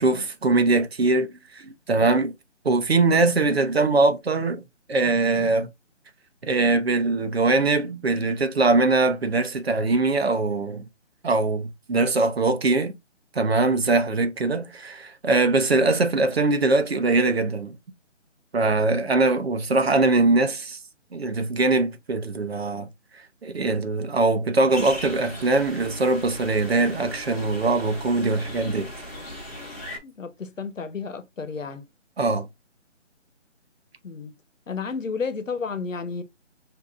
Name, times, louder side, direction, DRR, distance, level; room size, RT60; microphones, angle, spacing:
voice 1, 0.0-2.3 2.6-4.6 4.9-5.7 6.4-10.8 11.2-12.9 13.3-17.8 18.5-20.8 21.1-22.9 23.4-28.9 32.2-32.5, right 3 dB, 55° right, 0.8 m, -22 dB
sound 1, 24.7-30.0, left 1 dB, 15° left, 1.0 m, -38 dB
voice 2, 30.0-31.8 34.0-34.3 34.7-36.2, left 5 dB, 90° left, 1.1 m, -32 dB
6.0 x 2.8 x 2.4 m
hypercardioid pair, 175°, 37 cm